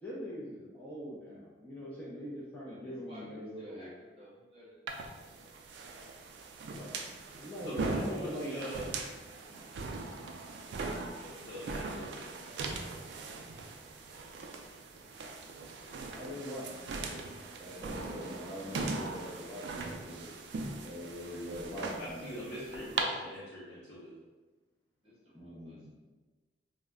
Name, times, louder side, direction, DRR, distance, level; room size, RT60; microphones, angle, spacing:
voice 1, 0.0-3.9 6.7-7.0 7.3-8.7 9.4-9.7 11.1-11.4 16.0-17.3 17.6-20.3 20.8-22.2 25.3-25.9, equal, 10° left, -8 dB, 0.5 m, -43 dB
voice 2, 2.6-4.8 17.4-18.4 21.0-23.0 25.0-26.0, equal, 30° right, -7 dB, 0.8 m, -54 dB
sound 1, 4.9-23.0, right 3 dB, 70° right, 0.3 m, -40 dB
voice 3, 7.6-8.9 11.4-12.8 22.0-24.2, equal, 90° left, -8 dB, 0.6 m, -43 dB
2.2 x 2.1 x 3.6 m, 1.2 s
head